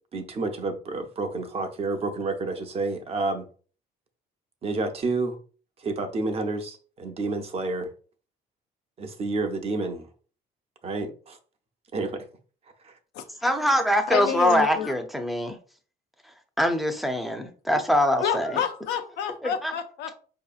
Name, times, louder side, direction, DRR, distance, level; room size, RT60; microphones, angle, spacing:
voice 1, 0.1-3.5 4.6-5.4 5.8-7.9 9.0-10.1 10.8-11.4 11.9-12.3 12.8-12.9, right 3 dB, 35° right, 0.7 m, -29 dB
voice 2, 13.4-15.6 16.6-18.6 19.4-19.7, equal, ahead, 0.6 m, -23 dB
voice 3, 14.1-14.9 18.2-20.1, left 8 dB, 85° left, 0.6 m, -29 dB
4.8 x 2.8 x 2.4 m
cardioid pair, 110°, 17 cm